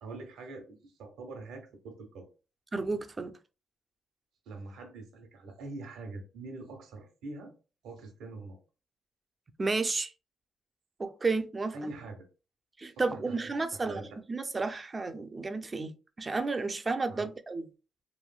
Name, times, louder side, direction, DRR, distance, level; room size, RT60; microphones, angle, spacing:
voice 1, 0.0-2.3 4.5-7.5 7.8-8.6 11.7-12.2 13.1-14.2 17.1-17.3, right 2 dB, 85° right, 0.9 m, -44 dB
voice 2, 2.7-3.3 9.6-10.1 11.0-11.9 12.8-15.9 16.2-17.7, right 3 dB, 25° right, 0.4 m, -32 dB
3.1 x 2.6 x 2.2 m
cardioid pair, 90°, 0 cm